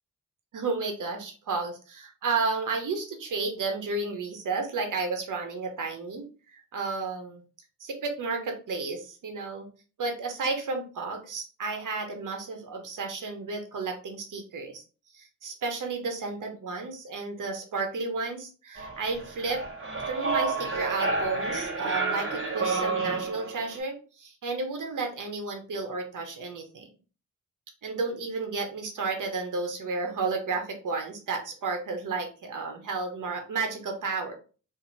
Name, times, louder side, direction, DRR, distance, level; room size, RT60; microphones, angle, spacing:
voice 1, 0.5-6.2 6.5-7.4 7.8-9.7 10.0-14.8 15.1-19.6 20.1-26.9 27.8-34.3, right 4 dB, 80° right, 3 dB, 0.9 m, -32 dB
sound 1, 18.8-23.8, right 3 dB, 40° right, 1.1 m, -30 dB
2.9 x 2.6 x 3.9 m, 0.36 s
cardioid pair, 70°, 31 cm